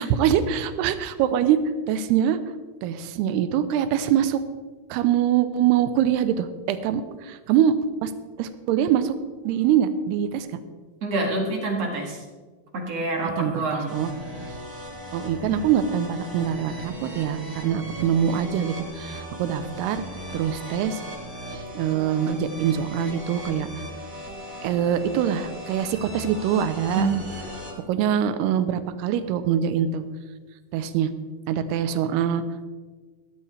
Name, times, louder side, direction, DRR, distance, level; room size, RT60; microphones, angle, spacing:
voice 1, 0.0-1.6 1.9-2.4 2.8-4.4 4.9-7.7 8.0-8.1 8.4-9.2 9.4-10.5 13.2-14.1 15.1-20.0 20.3-21.0 21.5-23.8 24.6-27.1 27.9-30.0 30.7-31.1 31.5-32.4, right 9 dB, 85° right, 11 dB, 2.8 m, -24 dB
voice 2, 11.0-12.2 12.7-13.9 26.9-27.2, right 3 dB, 50° right, 0 dB, 2.5 m, -26 dB
sound 1, 13.9-27.7, equal, 35° right, 5.0 m, -38 dB
17.0 x 12.5 x 3.3 m, 1.4 s
omnidirectional pair, 4.7 m